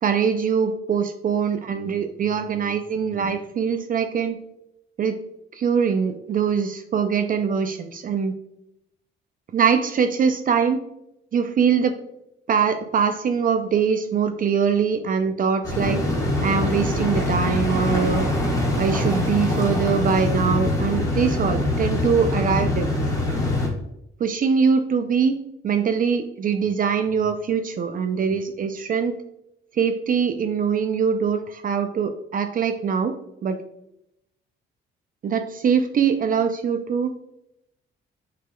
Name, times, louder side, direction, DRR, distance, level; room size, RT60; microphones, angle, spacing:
voice 1, 0.0-4.4 5.0-5.2 5.5-8.3 9.5-10.8 11.3-12.0 12.5-16.0 16.4-18.3 18.8-22.9 24.2-25.4 25.6-29.2 29.7-33.1 33.4-33.6 35.2-37.1, right 6 dB, 45° right, 8 dB, 0.4 m, -22 dB
sound 1, 15.6-23.7, left 2 dB, 15° left, 1.4 m, -23 dB
6.7 x 3.4 x 2.2 m, 0.83 s
cardioid pair, 90°, 20 cm